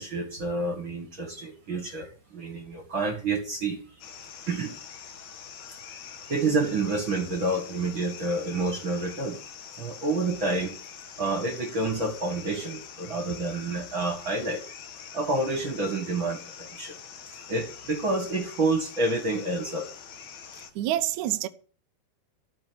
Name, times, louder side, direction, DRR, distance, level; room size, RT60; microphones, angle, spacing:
voice 1, 0.0-3.8 4.5-4.7 6.3-9.4 9.8-10.8 11.2-14.6 15.1-17.0 17.5-19.9, right 2 dB, 40° right, 1.8 m, -28 dB
sound 1, 4.0-20.7, left 8 dB, 60° left, 2.0 m, -45 dB
voice 2, 20.6-21.5, right 14 dB, 80° right, 1.7 m, -28 dB
14.0 x 5.5 x 9.5 m
omnidirectional pair, 4.8 m